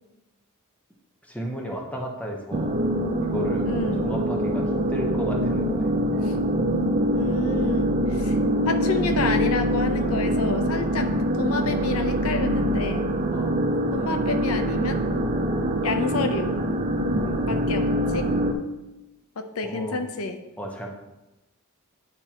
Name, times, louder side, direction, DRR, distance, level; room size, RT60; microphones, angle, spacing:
voice 1, 1.3-2.8 3.2-5.9 13.3-13.6 17.0-17.9 19.6-20.0 20.6-20.9, equal, 5° left, 0 dB, 0.9 m, -34 dB
sound 1, 2.5-18.5, equal, 35° right, 0.6 m, -24 dB
voice 2, 3.7-4.1 6.2-6.4 7.1-8.4 8.7-11.1 11.4-13.1 13.9-15.0 15.8-16.5 17.5-18.3 19.4-20.4, left 3 dB, 75° left, 7 dB, 0.6 m, -29 dB
10.5 x 4.3 x 2.9 m, 1.0 s
head